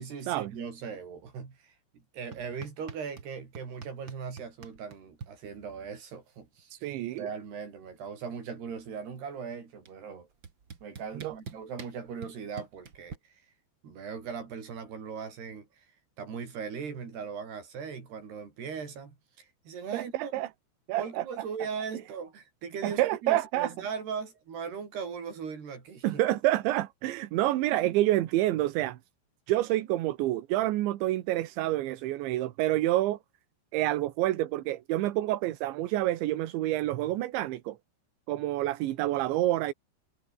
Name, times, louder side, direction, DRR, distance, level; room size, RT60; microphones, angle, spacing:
voice 1, 0.0-6.8 7.2-10.3 10.8-13.4 13.8-15.9 16.2-20.3 21.0-26.2, right 6 dB, 60° right, 7.0 m, -39 dB
sound 1, 2.3-3.3 3.5-5.3 6.6-6.7 6.9-7.3 7.6-9.0 9.9-10.0 10.4-13.2, right 6 dB, 35° right, 2.2 m, -45 dB
voice 2, 6.7-7.3 11.2-11.4 19.9-20.5 20.9-21.3 22.8-23.7 26.0-29.0 29.5-33.2 33.7-37.8 38.3-39.7, right 15 dB, 80° right, 3.6 m, -28 dB
omnidirectional pair, 5.3 m